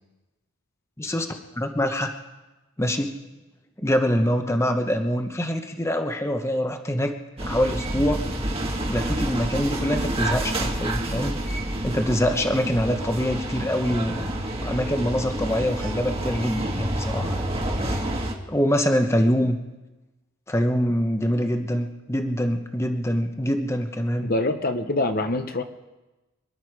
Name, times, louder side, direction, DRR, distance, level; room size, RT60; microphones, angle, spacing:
voice 1, 1.0-2.1 2.8-3.2 3.8-7.1 7.4-8.3 8.9-11.4 11.8-14.2 14.6-17.4 17.8-18.1 18.5-19.6 20.5-24.3, equal, 15° left, 5 dB, 1.0 m, -24 dB
sound 1, 7.4-18.3, right 1 dB, 30° right, 1.6 m, -28 dB
voice 2, 24.2-25.6, left 2 dB, 45° left, 7 dB, 0.9 m, -25 dB
26.5 x 11.0 x 4.7 m, 1.1 s
head